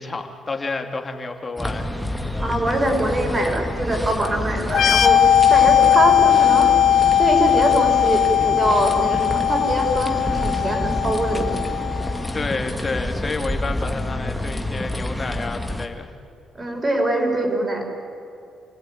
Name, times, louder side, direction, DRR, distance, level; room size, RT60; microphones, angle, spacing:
voice 1, 0.0-1.9 12.3-16.1, left 3 dB, 30° left, 4 dB, 2.8 m, -29 dB
sound 1, 1.6-15.9, left 1 dB, 5° left, 2.1 m, -28 dB
voice 2, 2.4-5.2 5.5-6.7 7.2-11.6 16.5-17.9, right 1 dB, 25° right, 3 dB, 6.0 m, -23 dB
sound 2, 4.7-12.2, left 9 dB, 65° left, 1.4 m, -18 dB
28.5 x 17.0 x 9.5 m, 2.5 s
cardioid pair, 90°, 0 cm